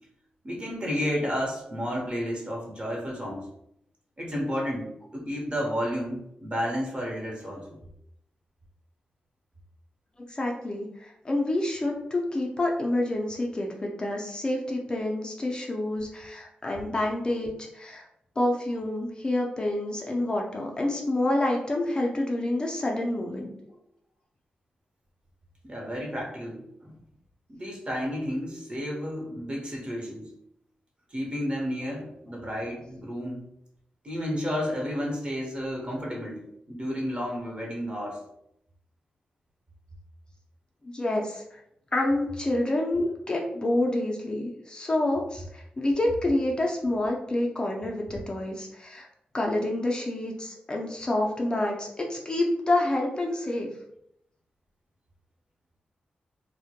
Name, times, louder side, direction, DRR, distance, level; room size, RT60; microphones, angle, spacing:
voice 1, 0.4-3.5 4.2-7.8 25.6-27.0 27.5-30.3 31.1-33.4 34.0-38.2, equal, 35° right, -1 dB, 0.9 m, -32 dB
voice 2, 10.3-18.1 18.4-23.5 40.8-41.6 41.9-49.1 49.3-53.7, left 1 dB, 30° left, 0 dB, 0.4 m, -28 dB
2.1 x 2.1 x 2.8 m, 0.75 s
cardioid pair, 75°, 3 cm